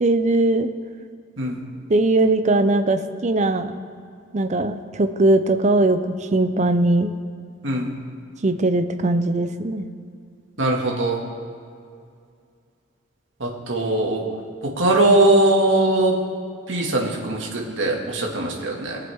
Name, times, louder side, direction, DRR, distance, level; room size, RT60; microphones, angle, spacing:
voice 1, 0.0-0.7 1.9-3.7 4.3-7.1 8.4-9.9, right 2 dB, 35° right, 9 dB, 0.6 m, -20 dB
voice 2, 10.6-11.2 13.4-14.2 14.6-16.2 16.7-19.0, right 2 dB, 65° right, -1 dB, 2.0 m, -20 dB
21.0 x 7.5 x 3.6 m, 2.3 s
head